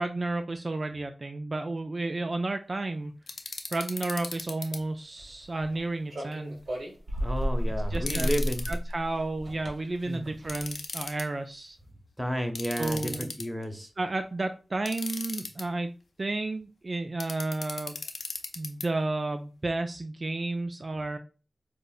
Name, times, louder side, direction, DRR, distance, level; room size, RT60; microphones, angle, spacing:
voice 1, 0.0-3.1 3.7-6.6 7.9-8.3 8.7-11.8 12.8-13.3 14.0-15.9 16.2-18.0 18.6-21.2, right 2 dB, 50° right, 6 dB, 0.3 m, -32 dB
sound 1, 3.3-4.8 7.9-8.8 10.5-11.2 12.6-13.6 14.9-15.6 17.2-18.9, left 3 dB, 75° left, 0.5 m, -37 dB
sound 2, 5.2-5.8 6.1-10.8, equal, 70° right, 1.1 m, -32 dB
voice 2, 7.2-8.6 10.1-10.2 12.2-13.9, equal, 5° right, 5 dB, 0.9 m, -32 dB
5.1 x 2.1 x 2.3 m, 0.34 s
cardioid pair, 45°, 0 cm